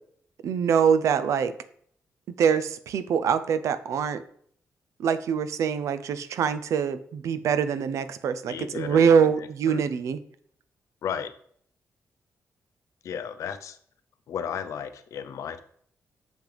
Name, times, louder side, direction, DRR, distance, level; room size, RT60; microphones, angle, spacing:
voice 1, 0.4-1.5 2.4-4.2 5.0-10.2, right 7 dB, 80° right, 13 dB, 0.5 m, -24 dB
voice 2, 8.5-9.1 9.7-9.8 11.0-11.3 13.0-13.8 14.3-15.6, left 8 dB, 80° left, 10 dB, 0.6 m, -33 dB
7.2 x 5.9 x 3.4 m, 0.63 s
wide cardioid pair, 155°, 5 cm